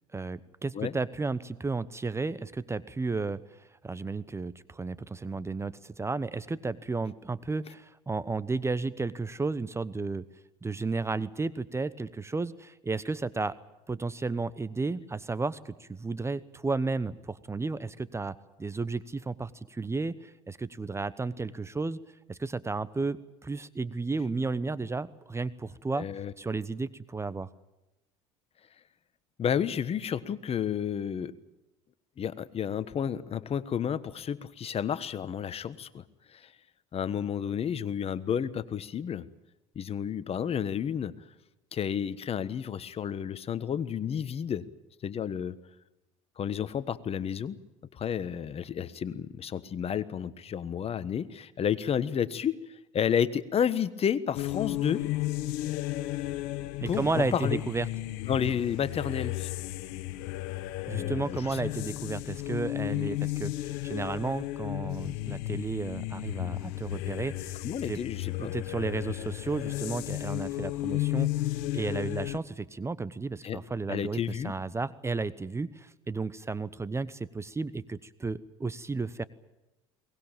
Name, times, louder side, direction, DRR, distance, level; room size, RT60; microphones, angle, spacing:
voice 1, 0.1-3.4 3.8-10.2 10.6-13.6 13.9-22.0 22.3-26.1 26.4-27.5 56.8-57.9 60.9-67.6 67.9-68.0 68.4-79.2, right 3 dB, 15° right, 16 dB, 1.0 m, -33 dB
voice 2, 25.9-26.3 29.4-31.3 32.2-36.5 36.9-39.2 39.7-41.1 41.7-44.6 45.0-45.6 46.4-47.6 47.9-55.0 56.9-57.6 58.3-59.5 61.0-61.6 67.6-68.5 73.4-73.6 73.9-74.5, left 8 dB, 40° left, 16 dB, 1.3 m, -31 dB
sound 1, 54.3-72.4, left 17 dB, 65° left, 1.1 m, -33 dB
22.5 x 19.5 x 9.0 m, 0.95 s
hypercardioid pair, 75°, 16 cm